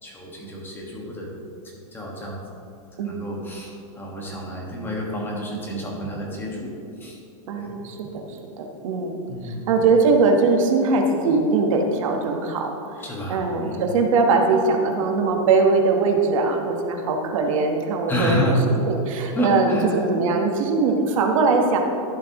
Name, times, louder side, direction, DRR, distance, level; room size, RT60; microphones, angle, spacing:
voice 1, 0.0-1.3 1.9-2.4 3.0-6.7 7.0-7.2 7.5-7.9 9.3-9.7 13.0-13.9 18.1-18.7 19.3-20.0, equal, 10° left, -2 dB, 1.4 m, -28 dB
voice 2, 3.0-3.3 7.5-9.2 9.4-12.7 13.3-18.4 18.9-21.8, right 4 dB, 70° right, 3 dB, 1.2 m, -21 dB
12.0 x 7.4 x 3.0 m, 2.6 s
supercardioid pair, 145°, 18 cm